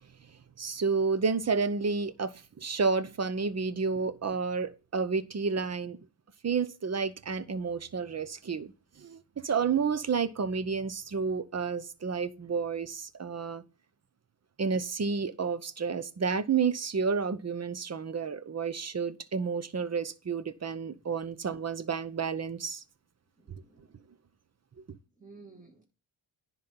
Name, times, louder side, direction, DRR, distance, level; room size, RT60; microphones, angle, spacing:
voice 1, 0.6-6.0 6.4-8.7 9.0-13.6 14.6-22.8, right 5 dB, 35° right, 0.7 m, -30 dB
voice 2, 23.4-24.0 25.2-25.8, right 3 dB, 15° right, 1.8 m, -53 dB
10.5 x 3.9 x 5.6 m
cardioid pair, 80°, 47 cm